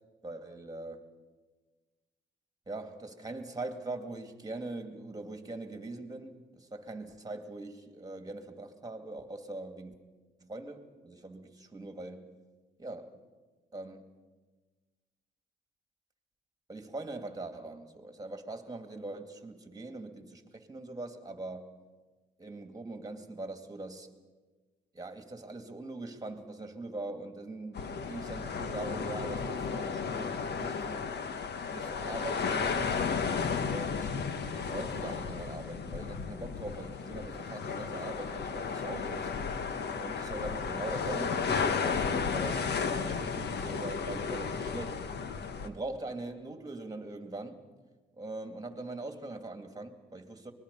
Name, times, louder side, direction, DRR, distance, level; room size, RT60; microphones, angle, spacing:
voice 1, 0.2-1.0 2.7-9.9 10.4-12.3 12.8-13.2 13.7-14.1 16.7-21.7 22.4-24.1 24.9-31.1 31.7-33.0 33.6-34.1 34.5-39.3 40.0-45.0 45.6-47.6 48.1-50.5, right 2 dB, 20° right, 6 dB, 2.4 m, -42 dB
sound 1, 27.7-45.7, left 5 dB, 60° left, 1.4 m, -33 dB
24.5 x 20.5 x 5.5 m, 1.3 s
cardioid pair, 90°, 20 cm